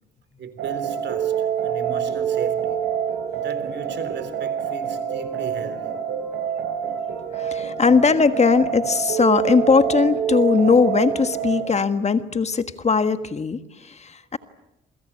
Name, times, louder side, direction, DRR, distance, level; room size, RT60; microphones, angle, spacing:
voice 1, 0.4-2.9 3.3-6.1, right 6 dB, 65° right, 3.4 m, -35 dB
sound 1, 0.6-11.6, right 8 dB, 80° right, 6.0 m, -26 dB
voice 2, 7.3-14.4, left 5 dB, 35° left, 1.5 m, -19 dB
28.5 x 23.5 x 8.7 m
cardioid pair, 90°, 20 cm